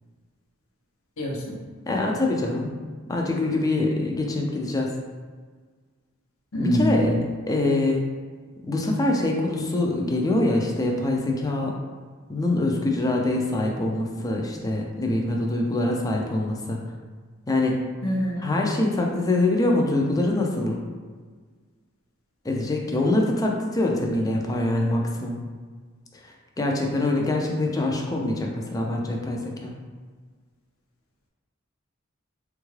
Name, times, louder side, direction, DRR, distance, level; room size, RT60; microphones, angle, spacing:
voice 1, 1.2-1.6 6.5-7.2 18.0-18.5, equal, 80° left, -1 dB, 0.7 m, -25 dB
voice 2, 1.9-2.7 3.1-5.0 6.6-7.2 7.5-8.0 8.6-11.8 12.3-16.9 17.5-17.9 18.4-20.8 22.4-25.4 26.6-29.7, left 2 dB, 15° left, 0 dB, 0.4 m, -24 dB
3.6 x 2.3 x 3.1 m, 1.5 s
head